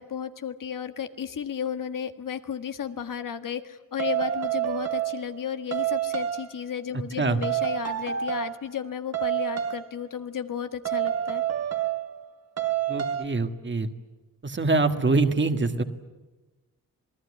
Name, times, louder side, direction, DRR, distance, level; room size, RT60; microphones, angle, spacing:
voice 1, 0.0-11.4, left 8 dB, 75° left, 9 dB, 1.6 m, -33 dB
sound 1, 4.0-5.4 5.7-6.6 7.4-8.7 9.1-9.9 10.8-12.3 12.6-13.2, right 11 dB, 50° right, 1.5 m, -28 dB
voice 2, 12.9-13.9 14.4-15.8, right 3 dB, 35° right, 8 dB, 1.7 m, -24 dB
27.0 x 20.5 x 9.8 m, 1.2 s
wide cardioid pair, 150°, 32 cm